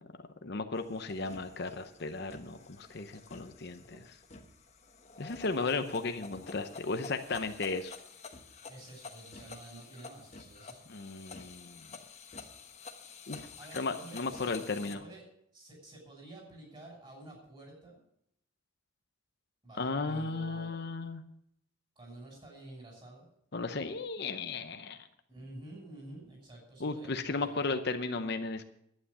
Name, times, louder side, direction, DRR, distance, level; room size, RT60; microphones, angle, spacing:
voice 1, 0.4-4.0 5.2-7.9 10.9-11.8 13.3-13.5 13.7-15.0 19.8-21.2 23.5-25.0 26.8-28.7, left 3 dB, 55° left, 8 dB, 0.8 m, -35 dB
sound 1, 0.7-14.9, left 4 dB, 35° left, 1.2 m, -50 dB
voice 2, 8.7-10.8 13.6-14.5 14.8-15.2 15.5-18.0 19.6-20.8 22.0-23.3 25.3-27.7, right 1 dB, 25° right, 0 dB, 6.0 m, -50 dB
11.5 x 9.5 x 6.8 m, 0.72 s
head